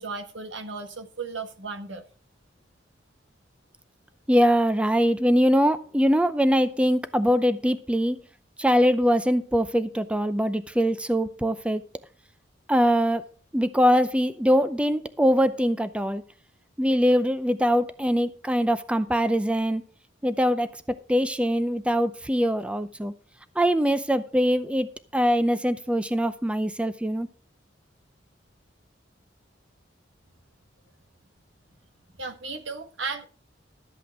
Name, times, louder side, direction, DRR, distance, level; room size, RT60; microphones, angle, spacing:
voice 1, 0.0-2.0 32.2-33.3, right 4 dB, 75° right, 1.6 m, -35 dB
voice 2, 4.3-8.2 8.6-11.8 12.7-13.2 13.5-16.2 16.8-19.8 20.2-23.1 23.6-27.3, equal, 5° right, 0.5 m, -23 dB
13.0 x 8.3 x 4.7 m
head